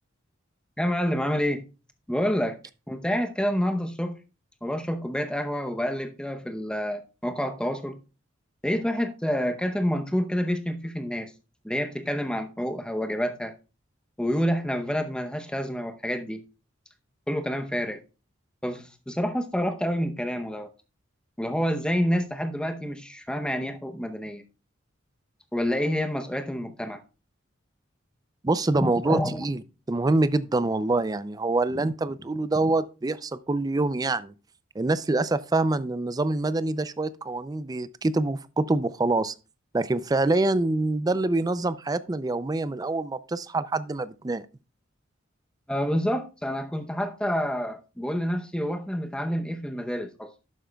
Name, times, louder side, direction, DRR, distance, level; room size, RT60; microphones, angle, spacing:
voice 1, 0.8-1.6 2.1-2.6 2.9-4.1 4.6-8.0 8.6-11.3 11.6-13.5 14.2-16.4 17.3-18.0 18.6-20.7 21.4-24.4 25.5-27.0 28.8-29.4 45.7-50.3, equal, 5° left, 0.7 m, -28 dB
voice 2, 28.4-29.6 29.9-34.3 34.8-39.3 39.7-44.4, right 2 dB, 20° right, 0.4 m, -25 dB
11.5 x 8.8 x 2.3 m
head